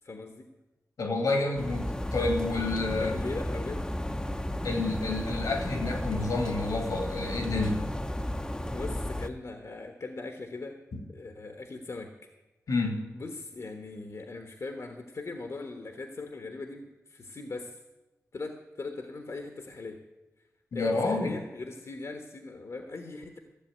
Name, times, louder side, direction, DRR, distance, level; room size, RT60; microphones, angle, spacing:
voice 1, 0.0-0.5 3.0-3.8 8.7-10.8 11.1-12.1 13.1-17.8 18.3-20.0 20.7-23.4, left 3 dB, 60° left, 5 dB, 1.3 m, -40 dB
voice 2, 1.0-3.2 4.6-7.9 10.9-11.0 12.7-13.0 20.7-21.3, left 3 dB, 85° left, 4 dB, 2.4 m, -29 dB
sound 1, 1.6-9.3, left 1 dB, 15° left, 0.8 m, -33 dB
13.5 x 7.1 x 9.2 m, 1.1 s
cardioid pair, 45°, 6 cm